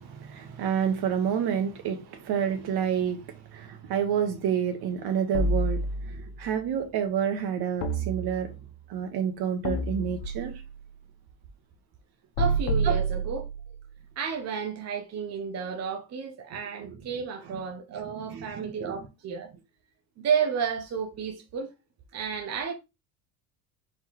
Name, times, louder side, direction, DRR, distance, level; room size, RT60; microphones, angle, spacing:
voice 1, 0.0-8.5 8.9-10.5 12.8-12.9 17.5-17.6 18.0-18.9, right 8 dB, 55° right, 1.3 m, -29 dB
sound 1, 5.3-6.4 7.8-8.8 9.6-10.7 12.4-13.8, right 2 dB, 80° left, 1.0 m, -28 dB
voice 2, 12.4-13.5 14.2-19.5 20.2-21.7 22.1-22.7, right 6 dB, 35° right, 0.8 m, -32 dB
4.3 x 3.8 x 3.0 m
supercardioid pair, 115°, 47 cm